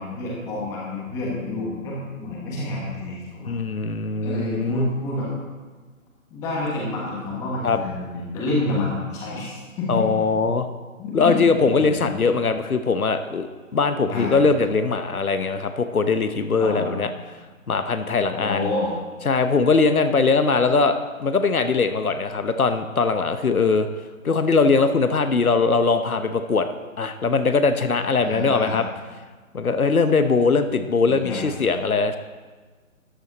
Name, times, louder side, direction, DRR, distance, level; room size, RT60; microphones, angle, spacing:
voice 1, 0.0-3.5 4.2-5.3 6.3-10.1 11.0-12.1 14.1-14.4 16.6-16.9 18.4-18.9 28.2-28.8 31.1-31.4, left 2 dB, 5° left, -4 dB, 1.2 m, -28 dB
voice 2, 3.4-4.9 7.6-7.8 9.9-10.7 11.1-17.1 17.7-18.7 19.2-23.9 24.2-26.7 27.0-28.8 29.5-32.2, left 4 dB, 85° left, 9 dB, 1.0 m, -21 dB
13.0 x 9.3 x 4.0 m, 1.4 s
figure-of-eight pair, 150°, 42 cm